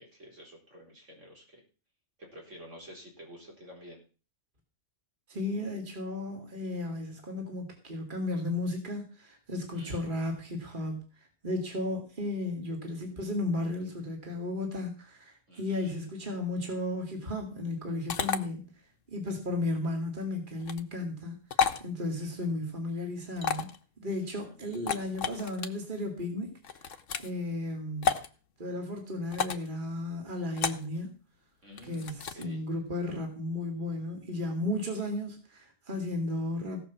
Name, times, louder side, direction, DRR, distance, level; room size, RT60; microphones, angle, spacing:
voice 1, 0.0-1.6 2.2-4.0 9.7-10.1 15.5-15.9 24.4-25.3 31.6-32.6, equal, 75° right, 0 dB, 4.4 m, -51 dB
voice 2, 5.3-18.7 19.1-23.7 24.0-26.5 26.8-28.1 28.6-31.1 31.8-36.8, left 2 dB, 40° right, 2 dB, 2.5 m, -34 dB
sound 1, 18.1-18.4 20.6-20.8 21.5-21.8 23.4-23.8 24.7-25.7 26.6-27.3 28.0-28.3 29.3-29.7 30.6-30.9 31.8-32.4, left 6 dB, 90° left, 1.4 m, -31 dB
17.0 x 5.7 x 7.2 m, 0.36 s
omnidirectional pair, 1.3 m